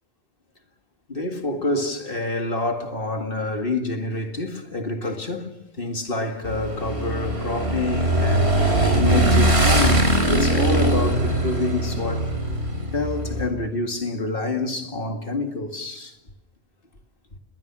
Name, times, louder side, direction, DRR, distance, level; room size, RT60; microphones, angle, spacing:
voice 1, 1.1-12.3 12.9-16.2, left 2 dB, 55° left, 2.3 m, -27 dB
Motorcycle / Engine, 6.5-13.5, right 1 dB, 80° right, 4.6 m, -21 dB
30.0 x 20.5 x 6.2 m
omnidirectional pair, 1.1 m